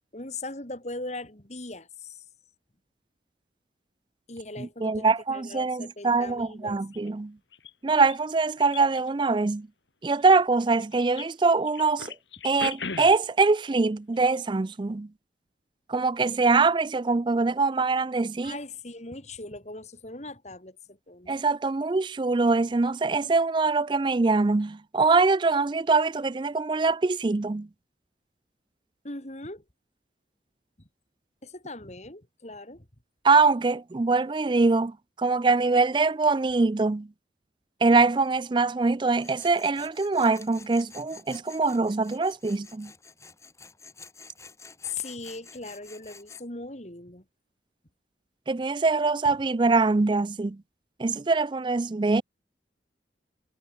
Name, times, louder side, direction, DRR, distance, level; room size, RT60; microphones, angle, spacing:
voice 1, 0.1-2.2 4.3-6.8 18.4-21.4 29.0-29.6 30.8-30.9 31.4-32.9 44.8-47.2, left 3 dB, 40° left, 3.7 m, -39 dB
voice 2, 4.6-7.3 7.8-9.7 10.0-12.1 12.4-15.1 15.9-18.6 21.3-27.7 33.2-34.9 35.2-37.1 37.8-42.9 48.5-50.6 51.0-52.2, right 3 dB, 25° right, 0.4 m, -23 dB
sound 1, 6.9-7.1 7.5-8.2 8.6-9.1 10.2-11.3 11.6-13.4 14.1-14.4 14.6-14.7, left 5 dB, 80° left, 3.4 m, -38 dB
Tools, 39.2-46.4, left 4 dB, 15° left, 7.4 m, -49 dB
head